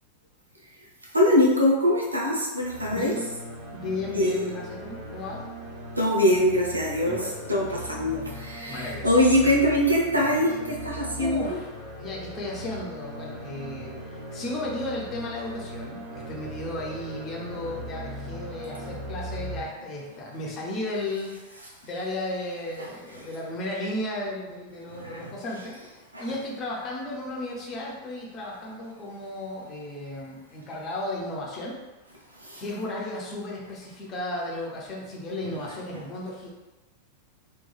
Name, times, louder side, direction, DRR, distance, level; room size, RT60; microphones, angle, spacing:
voice 1, 1.1-3.1 4.1-4.4 6.0-11.6 22.8-22.9 23.1-23.3 24.9-25.3 26.1-26.2 32.4-32.6, left 1 dB, 80° right, -3 dB, 0.5 m, -23 dB
sound 1, 2.6-19.6, equal, 40° right, 1.0 m, -39 dB
voice 2, 2.9-3.3 3.7-5.4 7.0-7.6 8.7-9.2 10.5-10.7 11.2-25.8 26.2-31.8 32.6-36.5, left 1 dB, 30° left, -3 dB, 0.6 m, -34 dB
3.0 x 2.2 x 2.2 m, 1.1 s
figure-of-eight pair, 90°, 0 cm